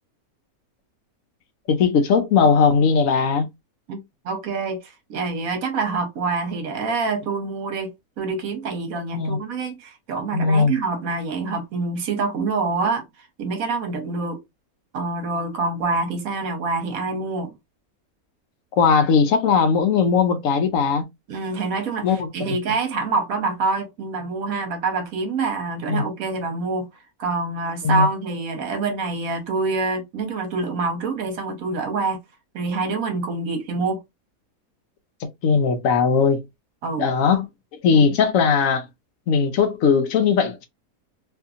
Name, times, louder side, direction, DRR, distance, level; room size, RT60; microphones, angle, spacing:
voice 1, 1.7-3.5 9.1-9.4 10.3-10.7 18.7-21.0 22.0-22.6 25.9-26.0 27.8-28.1 35.4-36.4 37.0-37.5 37.8-38.9 39.3-40.7, left 5 dB, 70° left, 0.9 m, -19 dB
voice 2, 4.2-13.0 13.4-14.4 14.9-17.5 21.3-26.9 27.2-32.2 32.5-34.0 36.8-37.1 37.9-38.0, right 3 dB, 75° right, 1.3 m, -26 dB
2.8 x 2.6 x 2.3 m
omnidirectional pair, 1.5 m